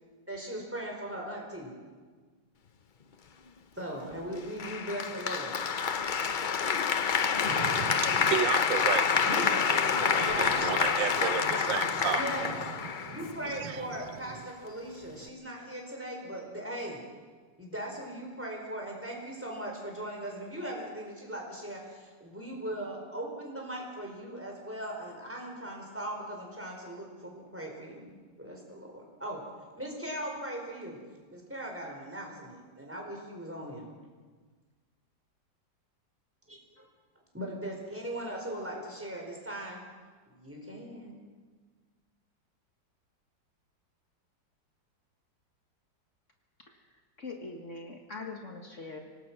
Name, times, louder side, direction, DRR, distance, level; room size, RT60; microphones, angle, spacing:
voice 1, 0.3-1.7 3.7-5.6 9.2-9.5 9.9-10.5 12.1-12.6 13.0-17.0 17.6-29.4 29.8-31.0 31.3-33.9 36.5-36.9 37.3-39.8 40.3-41.2, right 1 dB, 5° right, 4.7 m, -39 dB
Applause, 4.6-13.6, left 6 dB, 90° left, 0.4 m, -28 dB
voice 2, 7.5-12.2 12.7-13.2 13.4-13.9 14.3-14.4, right 10 dB, 85° right, 1.6 m, -34 dB
voice 3, 47.2-49.0, left 3 dB, 40° left, 2.0 m, -42 dB
25.5 x 19.0 x 6.1 m
omnidirectional pair, 2.0 m